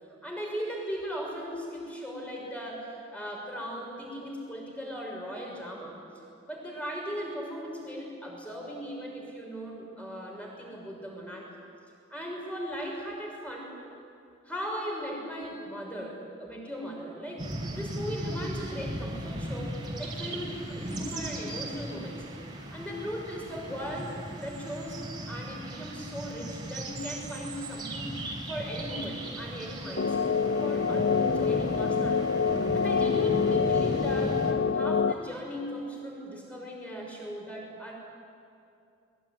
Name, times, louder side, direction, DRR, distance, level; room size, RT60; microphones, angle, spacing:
voice 1, 0.2-6.0 6.5-11.5 12.1-13.7 14.4-22.2 22.5-28.2 28.5-30.3 30.6-32.3 32.7-37.9, equal, 5° left, -1 dB, 6.2 m, -38 dB
sound 1, 17.4-34.5, right 1 dB, 25° right, 3.6 m, -37 dB
sound 2, 30.0-35.1, left 5 dB, 65° left, 0.6 m, -26 dB
23.0 x 22.0 x 9.8 m, 2.6 s
head